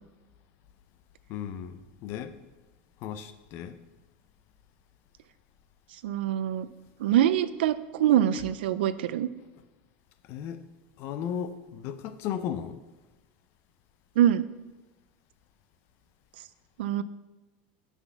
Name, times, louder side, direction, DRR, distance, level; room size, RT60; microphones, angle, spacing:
voice 1, 1.3-2.4 3.0-3.8 10.3-10.6 11.0-12.8, left 9 dB, 50° left, 0.5 m, -35 dB
voice 2, 6.0-6.7 7.0-9.3 14.2-14.5 16.8-17.0, right 11 dB, 90° right, 0.4 m, -24 dB
5.9 x 5.9 x 5.4 m
supercardioid pair, 145°, 5 cm